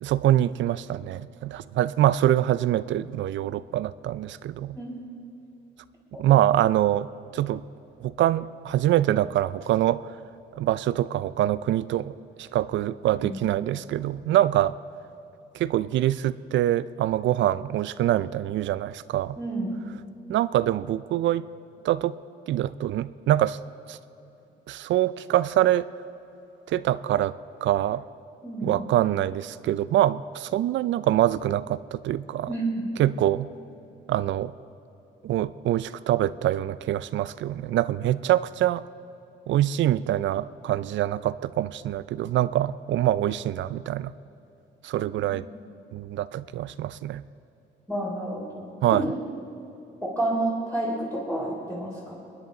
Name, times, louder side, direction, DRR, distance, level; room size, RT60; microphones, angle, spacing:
voice 1, 0.0-4.8 6.2-7.1 7.3-7.6 8.0-10.2 10.5-14.8 15.5-19.4 20.3-21.5 21.8-22.2 22.5-23.6 23.9-24.0 24.7-25.9 26.7-27.3 27.6-28.0 28.6-32.5 33.0-33.5 34.1-34.5 35.2-38.8 39.5-44.1 44.8-45.4 45.9-47.2 48.8-49.1, right 13 dB, 70° right, 17 dB, 0.4 m, -24 dB
voice 2, 13.1-13.4 19.4-19.8 28.4-28.8 32.5-32.9 45.2-45.3 47.9-49.2 50.0-52.1, right 1 dB, 10° left, -7 dB, 3.6 m, -30 dB
24.5 x 10.5 x 3.9 m, 2.9 s
cardioid pair, 90°, 20 cm